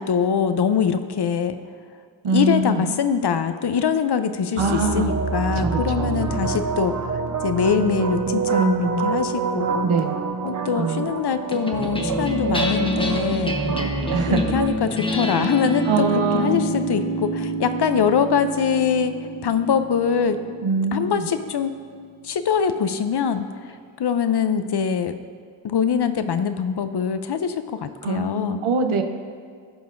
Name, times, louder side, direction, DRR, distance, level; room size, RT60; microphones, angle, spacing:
voice 1, 0.0-1.6 2.3-9.9 10.4-13.6 14.3-19.1 19.4-20.4 20.9-21.7 22.2-23.5 24.0-25.1 25.6-28.6, left 7 dB, 55° left, 10 dB, 0.6 m, -23 dB
voice 2, 2.2-2.9 4.6-5.1 5.6-5.7 6.0-6.4 8.5-9.3 9.8-10.2 10.5-11.1 13.6-14.4 15.9-16.6 20.6-21.3 28.0-29.0, right 3 dB, 85° right, 5 dB, 0.8 m, -24 dB
sound 1, 4.6-14.7, right 5 dB, 40° right, 0.8 m, -26 dB
sound 2, 11.5-22.1, right 1 dB, 10° left, 1.0 m, -28 dB
16.0 x 5.4 x 2.6 m, 2.1 s
cardioid pair, 45°, 48 cm